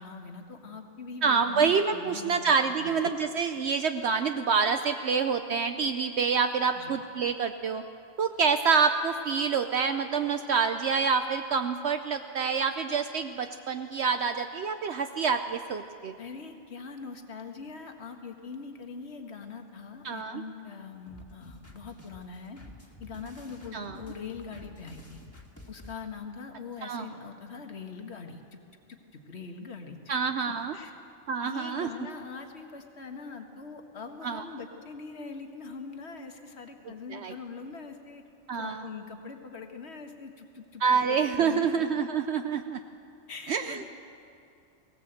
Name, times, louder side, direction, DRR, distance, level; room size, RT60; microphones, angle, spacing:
voice 1, 0.0-2.9 6.8-7.0 16.2-22.6 23.0-25.2 25.7-28.6 28.9-30.9 31.4-38.2 38.5-41.7 43.3-43.9, left 5 dB, 60° left, 5 dB, 1.8 m, -42 dB
voice 2, 1.2-7.8 8.2-16.1 20.0-20.4 23.7-24.0 26.8-27.0 30.1-30.7 31.3-31.9 34.2-34.4 37.1-37.3 38.5-38.8 40.8-42.8 43.5-43.9, right 5 dB, 65° right, 8 dB, 0.9 m, -27 dB
sound 1, 21.1-25.9, left 1 dB, 10° left, 2.0 m, -50 dB
18.5 x 18.0 x 7.9 m, 2.5 s
omnidirectional pair, 1.3 m